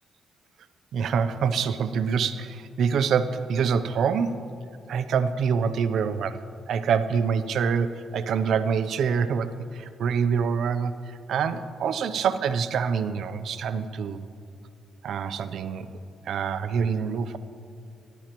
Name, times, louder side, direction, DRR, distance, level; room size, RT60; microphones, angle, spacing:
voice 1, 0.9-4.4 4.9-14.2 15.0-15.9 16.3-17.4, right 6 dB, 75° right, 11 dB, 0.5 m, -26 dB
18.5 x 11.5 x 3.0 m, 2.5 s
cardioid pair, 85°, 0 cm